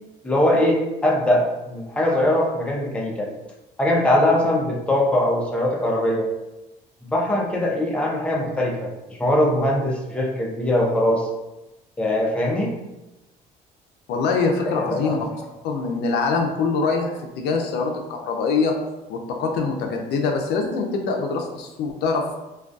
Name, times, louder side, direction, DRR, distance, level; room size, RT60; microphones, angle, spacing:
voice 1, 0.2-3.3 3.8-6.3 7.0-11.2 12.0-12.7 14.7-15.2, left 1 dB, 5° left, -2 dB, 0.4 m, -21 dB
voice 2, 14.1-15.3 15.6-18.7 19.1-22.4, left 4 dB, 80° left, 2 dB, 0.4 m, -24 dB
2.2 x 2.2 x 2.5 m, 1.0 s
cardioid pair, 110°, 17 cm